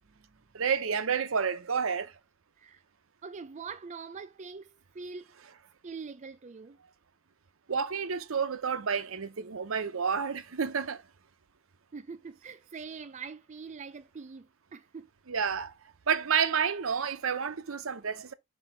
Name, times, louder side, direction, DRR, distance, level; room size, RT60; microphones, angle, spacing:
voice 1, 0.5-2.1 7.7-11.0 15.3-15.7 16.1-18.3, right 6 dB, 70° right, 0.7 m, -30 dB
voice 2, 3.2-5.3 5.8-6.8 11.9-15.1, right 5 dB, 35° right, 0.4 m, -43 dB
5.5 x 4.2 x 5.0 m
head